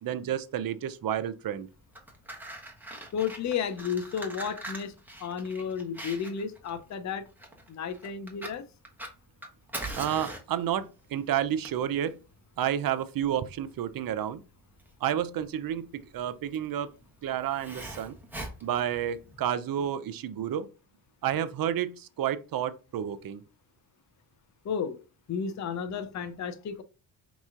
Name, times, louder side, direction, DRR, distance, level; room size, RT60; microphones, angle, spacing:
voice 1, 0.0-1.7 10.0-12.1 12.6-14.4 15.0-16.9 17.2-18.1 18.6-20.7 21.2-23.4, right 10 dB, 50° right, 0.6 m, -30 dB
Fire, 1.7-19.5, right 1 dB, 5° right, 1.2 m, -43 dB
voice 2, 3.1-7.2 7.7-8.6 24.6-25.0 25.3-26.8, left 7 dB, 40° left, 0.6 m, -33 dB
5.2 x 3.0 x 2.4 m
cardioid pair, 75°, 47 cm